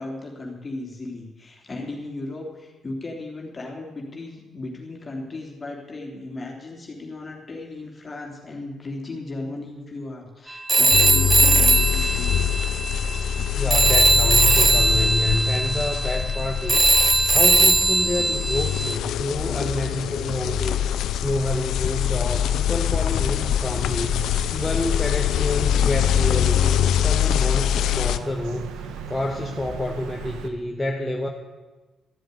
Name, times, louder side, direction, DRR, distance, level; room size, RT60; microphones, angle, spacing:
voice 1, 0.0-12.4 15.0-15.1, left 2 dB, 30° left, 0 dB, 3.1 m, -36 dB
Telephone, 10.7-13.4 13.7-19.0, right 3 dB, 25° right, 0.7 m, -20 dB
sound 1, 10.9-28.2, left 10 dB, 80° left, 0.6 m, -24 dB
voice 2, 13.5-31.3, left 1 dB, 15° left, 0 dB, 1.3 m, -28 dB
Bird vocalization bird call bird song, 22.9-30.5, right 6 dB, 90° right, 1.2 m, -39 dB
13.0 x 7.8 x 9.7 m, 1.2 s
cardioid pair, 90°, 0 cm